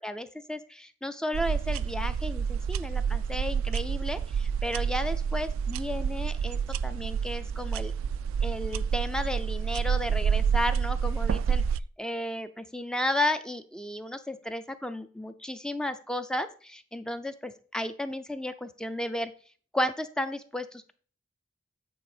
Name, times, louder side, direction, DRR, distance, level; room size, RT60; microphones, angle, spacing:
voice 1, 0.0-7.9 8.4-11.6 12.0-19.3 19.7-20.9, left 1 dB, 5° left, 10 dB, 0.4 m, -33 dB
sound 1, 1.3-11.8, right 7 dB, 85° right, 0.3 m, -28 dB
8.7 x 4.2 x 4.9 m, 0.43 s
head